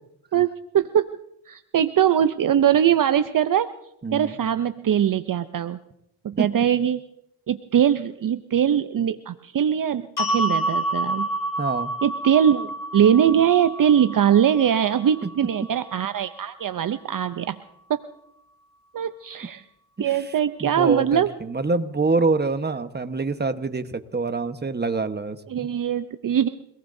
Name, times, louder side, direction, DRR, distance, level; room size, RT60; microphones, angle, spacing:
voice 1, 0.3-1.2 1.5-3.7 4.1-5.8 6.2-7.0 7.5-11.3 12.0-17.6 17.9-18.1 18.9-19.6 20.0-21.3 25.5-26.5, right 9 dB, 55° right, 11 dB, 0.7 m, -21 dB
voice 2, 4.0-4.3 6.3-6.5 11.6-11.9 15.2-15.3 15.6-15.7 20.0-20.3 20.6-25.7, right 3 dB, 25° right, 9 dB, 1.2 m, -26 dB
sound 1, 10.2-16.4, right 1 dB, 75° left, 4.5 m, -29 dB
28.5 x 18.0 x 2.7 m, 0.82 s
cardioid pair, 60°, 39 cm